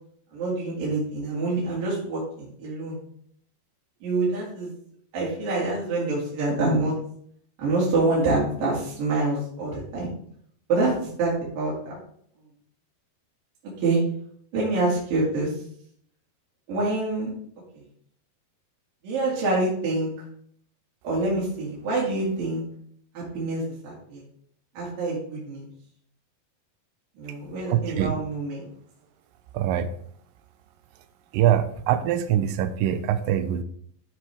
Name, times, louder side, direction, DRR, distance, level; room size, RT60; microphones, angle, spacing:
voice 1, 0.3-3.0 4.0-4.7 5.1-6.9 7.6-10.1 10.7-12.0 13.8-14.0 14.5-15.6 16.7-17.3 19.0-20.1 21.0-22.6 23.1-24.2 24.7-25.7 27.2-28.7, right 2 dB, 60° right, -6 dB, 4.0 m, -26 dB
voice 2, 27.7-28.1 29.5-29.9 31.3-33.6, right 10 dB, 80° right, 9 dB, 2.1 m, -23 dB
13.0 x 6.0 x 3.5 m, 0.64 s
omnidirectional pair, 4.6 m